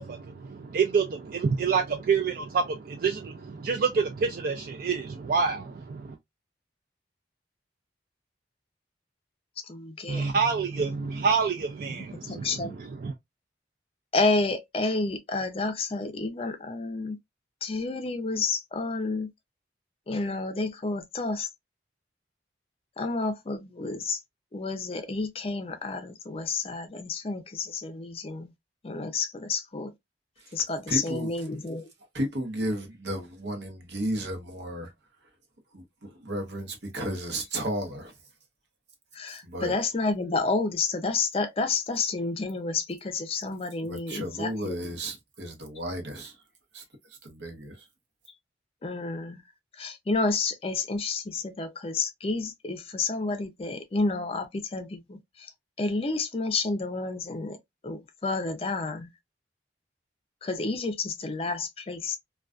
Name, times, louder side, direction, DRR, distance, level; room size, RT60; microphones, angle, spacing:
voice 1, 0.0-6.2 10.1-13.1, right 5 dB, 50° right, 0.3 m, -27 dB
voice 2, 9.7-10.3 11.9-12.8 14.1-17.2 17.6-19.3 20.1-21.5 23.0-24.2 24.5-28.5 28.8-29.9 30.5-31.9 39.2-44.9 48.8-49.4 49.8-55.2 55.8-57.6 57.8-59.1 60.4-62.2, left 3 dB, 30° left, 0.4 m, -30 dB
voice 3, 30.9-31.3 32.1-34.9 35.7-38.1 39.4-39.7 43.8-46.3 46.7-46.8 47.2-47.8, right 1 dB, 70° right, 0.8 m, -33 dB
2.3 x 2.2 x 2.3 m
head